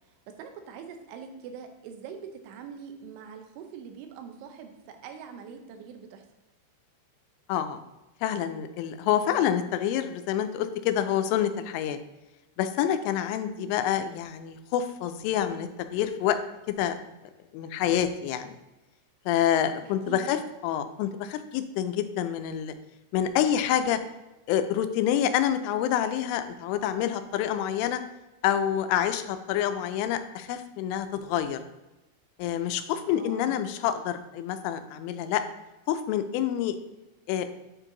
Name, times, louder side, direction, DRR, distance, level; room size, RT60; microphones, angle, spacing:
voice 1, 0.1-6.2 19.8-20.4 33.0-33.7, right 7 dB, 80° right, 6 dB, 3.1 m, -43 dB
voice 2, 7.5-7.8 8.2-12.0 12.6-16.4 16.7-16.9 17.5-18.6 19.3-20.4 20.6-22.7 23.1-24.0 24.5-28.0 28.4-31.6 32.4-35.4 35.9-36.8 37.3-37.5, left 10 dB, 90° left, 9 dB, 3.1 m, -27 dB
8.8 x 4.6 x 3.8 m, 1.0 s
omnidirectional pair, 5.5 m